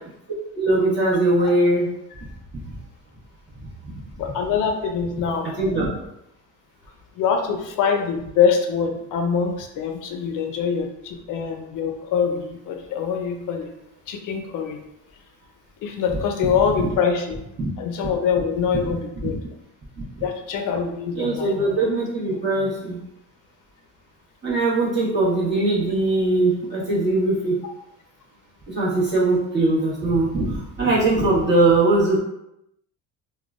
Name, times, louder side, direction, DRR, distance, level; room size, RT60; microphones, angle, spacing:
voice 1, 0.6-1.9 2.6-2.7 3.9-4.0 5.6-5.9 16.7-16.8 17.6-17.7 21.2-23.0 24.4-27.6 28.7-32.2, right 2 dB, 30° right, -7 dB, 1.2 m, -21 dB
voice 2, 4.2-5.5 7.2-13.7 14.1-14.8 15.8-17.4 17.8-19.4 20.2-21.9, left 6 dB, 65° left, 4 dB, 0.5 m, -24 dB
3.6 x 2.2 x 2.4 m, 0.84 s
cardioid pair, 120°, 34 cm